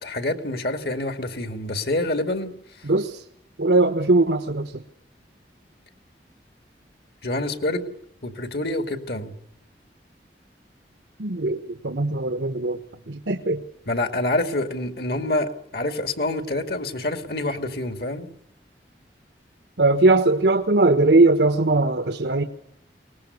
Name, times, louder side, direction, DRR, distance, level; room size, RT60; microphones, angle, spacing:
voice 1, 0.0-2.5 2.8-2.9 7.2-7.9 8.2-9.3 13.9-18.3, left 2 dB, 60° left, 8 dB, 2.4 m, -27 dB
voice 2, 2.8-3.2 3.6-4.8 11.2-12.8 13.1-13.6 19.8-22.4, right 2 dB, 80° right, 8 dB, 1.3 m, -20 dB
23.5 x 19.5 x 9.5 m, 0.74 s
head